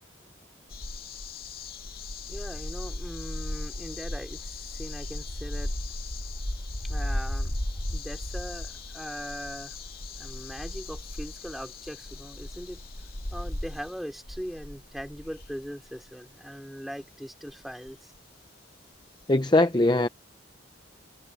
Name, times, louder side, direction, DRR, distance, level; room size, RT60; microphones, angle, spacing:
sound 1, 0.7-15.9 17.5-17.6 17.9-18.0, left 1 dB, 50° left, 2.8 m, -36 dB
voice 1, 2.3-5.7 6.8-7.5 7.9-9.8 10.2-12.8 13.3-18.1, equal, ahead, 3.3 m, -40 dB
voice 2, 19.3-20.1, left 2 dB, 20° left, 0.6 m, -21 dB
head